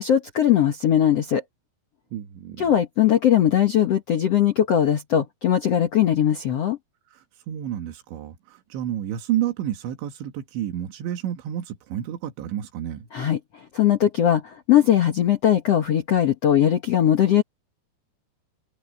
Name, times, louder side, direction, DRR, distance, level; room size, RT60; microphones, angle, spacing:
voice 1, 0.0-1.4 2.6-6.8 13.1-13.4 13.7-17.4, left 10 dB, 80° left, 1.4 m, -20 dB
voice 2, 2.1-2.7 7.1-13.1, right 11 dB, 90° right, 4.0 m, -30 dB
omnidirectional pair, 5.1 m